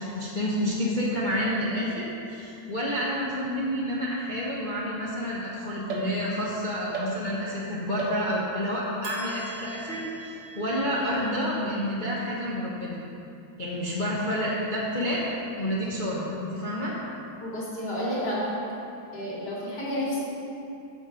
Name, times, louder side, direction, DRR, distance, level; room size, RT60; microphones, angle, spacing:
voice 1, 0.0-13.0 13.6-15.2 15.6-17.0, equal, 35° left, -7 dB, 0.8 m, -29 dB
sound 1, 5.9-6.5 6.9-7.6 8.0-8.6 9.0-12.5, right 2 dB, 65° right, 1.7 m, -39 dB
voice 2, 17.4-18.6 19.1-20.2, equal, 50° left, -7 dB, 2.8 m, -30 dB
7.7 x 7.2 x 5.1 m, 2.7 s
omnidirectional pair, 2.2 m